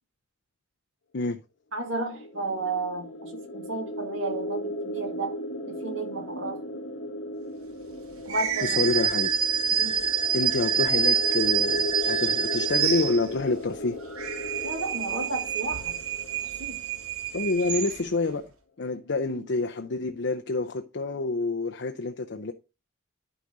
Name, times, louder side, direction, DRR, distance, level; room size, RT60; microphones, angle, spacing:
voice 1, 1.7-5.3 5.7-6.6 8.2-8.8 9.7-10.1 14.6-16.0 16.6-16.8, right 3 dB, 60° right, 2.4 m, -33 dB
sound 1, 2.0-17.6, left 1 dB, 80° left, 1.3 m, -37 dB
sound 2, 8.3-13.5 14.0-18.3, right 8 dB, 80° right, 1.2 m, -27 dB
voice 2, 8.6-9.3 10.3-14.0 17.3-18.5 18.8-22.5, left 3 dB, 55° left, 0.6 m, -28 dB
11.5 x 5.0 x 3.9 m
head